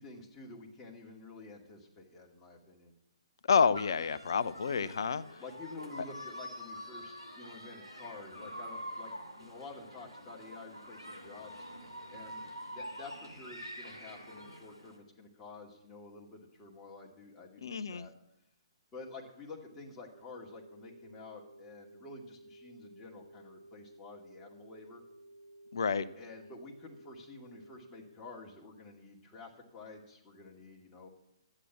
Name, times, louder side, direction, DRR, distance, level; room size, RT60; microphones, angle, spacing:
voice 1, 0.0-2.9 5.4-11.7 12.1-18.1 18.9-25.0 26.2-31.1, left 3 dB, 15° left, -2 dB, 2.2 m, -50 dB
voice 2, 3.5-5.2 17.6-18.1 25.7-26.1, left 6 dB, 55° left, 16 dB, 0.6 m, -29 dB
sound 1, 3.7-15.0, equal, 90° right, 2.6 m, -46 dB
sound 2, 20.1-28.1, right 1 dB, 70° right, 2.0 m, -55 dB
11.5 x 8.7 x 7.2 m, 0.83 s
figure-of-eight pair, 125°, 3 cm